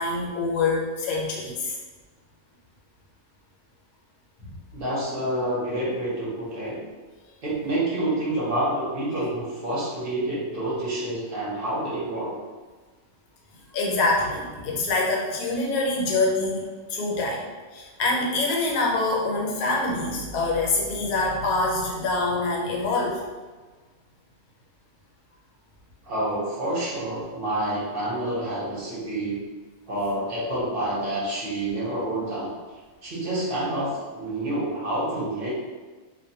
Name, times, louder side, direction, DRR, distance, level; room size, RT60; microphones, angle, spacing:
voice 1, 0.0-1.8 4.4-4.5 13.7-16.6 16.9-23.2, left 2 dB, 85° left, -2 dB, 1.1 m, -25 dB
voice 2, 4.7-6.8 7.4-12.3 26.0-29.4 29.9-32.6 33.0-35.5, right 1 dB, 50° right, -7 dB, 0.7 m, -28 dB
2.5 x 2.1 x 2.7 m, 1.4 s
omnidirectional pair, 1.6 m